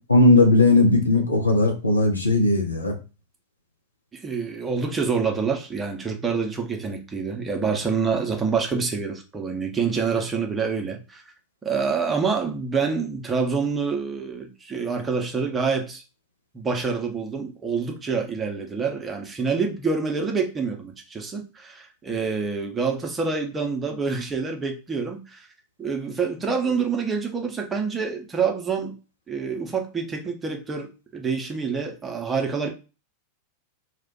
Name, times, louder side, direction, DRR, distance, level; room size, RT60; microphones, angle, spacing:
voice 1, 0.1-2.9, left 2 dB, 80° left, 0.7 m, -17 dB
voice 2, 4.1-11.2 11.6-16.0 16.5-25.5 25.8-28.9 29.3-32.7, right 5 dB, 15° right, 0.7 m, -27 dB
2.4 x 2.2 x 3.8 m
figure-of-eight pair, 90°, 0 cm